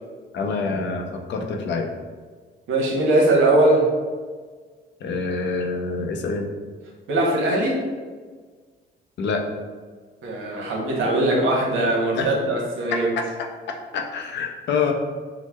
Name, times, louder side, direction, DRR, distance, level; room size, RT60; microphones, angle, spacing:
voice 1, 0.3-1.9 5.0-6.5 9.2-9.4 12.2-12.3 12.9-13.3 13.9-14.9, left 4 dB, 65° left, 3 dB, 0.5 m, -26 dB
voice 2, 2.7-3.8 7.1-7.8 10.2-13.1, right 2 dB, 80° right, -2 dB, 0.8 m, -20 dB
4.5 x 2.0 x 2.2 m, 1.5 s
cardioid pair, 90°, 20 cm